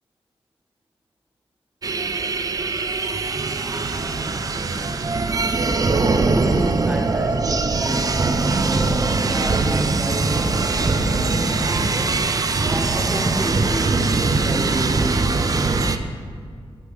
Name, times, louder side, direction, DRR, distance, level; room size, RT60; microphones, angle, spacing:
sound 1, 1.8-16.0, right 3 dB, 35° right, 0.4 m, -21 dB
voice 1, 6.0-15.3, right 1 dB, 10° right, 3 dB, 0.8 m, -30 dB
11.0 x 4.7 x 3.5 m, 2.1 s
wide cardioid pair, 105°, 10 cm